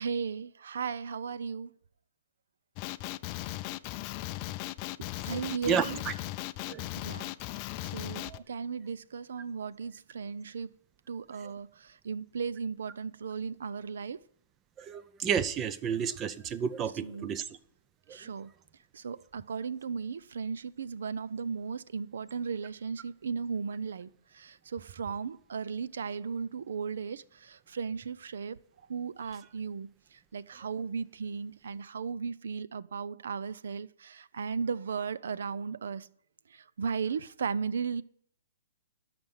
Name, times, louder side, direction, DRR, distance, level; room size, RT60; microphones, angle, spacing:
voice 1, 0.0-1.7 5.0-6.0 7.0-7.3 7.6-10.8 11.1-14.2 17.0-17.3 18.1-18.5 18.9-28.6 28.9-36.1 36.5-38.0, right 5 dB, 75° right, 0.5 m, -36 dB
Male speech man speaking, 2.8-8.4, left 16 dB, 35° left, 0.4 m, -37 dB
voice 2, 5.7-6.1 6.7-6.9 8.2-8.4 14.8-17.4, right 7 dB, 20° right, 0.6 m, -31 dB
12.0 x 6.0 x 8.2 m
hypercardioid pair, 150°, 0 cm